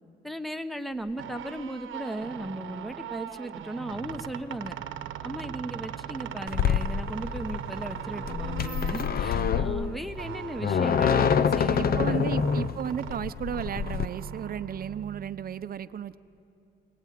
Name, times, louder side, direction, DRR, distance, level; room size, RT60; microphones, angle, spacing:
voice 1, 0.2-4.8 5.2-12.5, right 1 dB, ahead, 10 dB, 1.1 m, -36 dB
sound 1, 1.0-15.6, right 9 dB, 80° right, 1.1 m, -39 dB
sound 2, 6.5-14.1, left 7 dB, 50° left, 0.7 m, -26 dB
voice 2, 9.3-9.7 11.8-16.2, right 9 dB, 50° right, 13 dB, 0.8 m, -34 dB
23.5 x 19.5 x 9.4 m, 2.6 s
cardioid pair, 90°, 20 cm